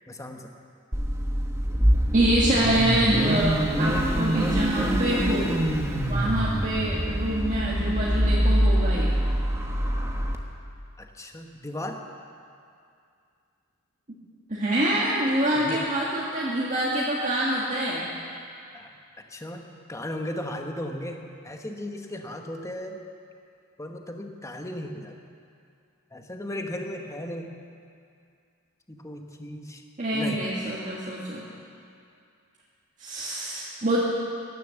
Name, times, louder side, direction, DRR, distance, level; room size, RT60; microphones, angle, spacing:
voice 1, 0.1-0.4 6.2-6.3 11.0-12.0 15.6-15.8 18.7-18.9 19.3-21.2 21.4-23.0 23.8-25.1 26.1-27.5 28.9-29.8 30.1-30.4, left 1 dB, 15° left, 3 dB, 1.1 m, -36 dB
Car / Idling / Accelerating revving vroom, 0.9-10.4, equal, 10° right, 1.0 m, -24 dB
voice 2, 2.1-5.5 6.0-9.1 14.5-18.0 30.0-31.4 33.0-34.0, right 1 dB, 35° right, -6 dB, 1.7 m, -25 dB
16.0 x 11.0 x 7.1 m, 2.4 s
head